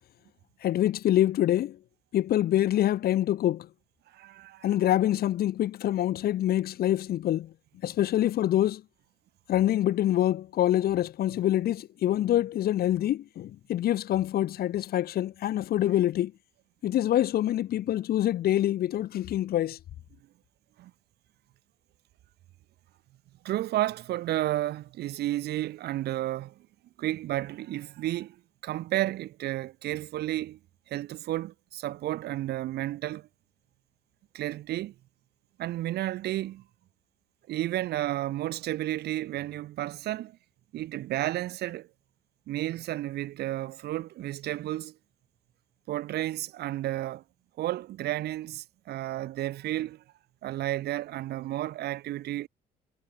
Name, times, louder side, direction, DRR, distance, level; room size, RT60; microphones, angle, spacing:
voice 1, 0.6-1.8 2.1-3.7 4.6-7.5 7.8-8.8 9.5-16.3 16.8-19.8, left 12 dB, 65° left, 2.9 m, -25 dB
voice 2, 4.1-4.7 20.8-20.9 23.4-26.5 27.0-28.4 28.6-30.6 30.9-33.3 34.3-34.9 35.6-36.6 37.5-40.4 40.7-41.9 42.5-44.9 45.9-47.2 47.6-50.0 50.4-52.5, right 14 dB, 75° right, 7.4 m, -32 dB
cardioid pair, 110°, 17 cm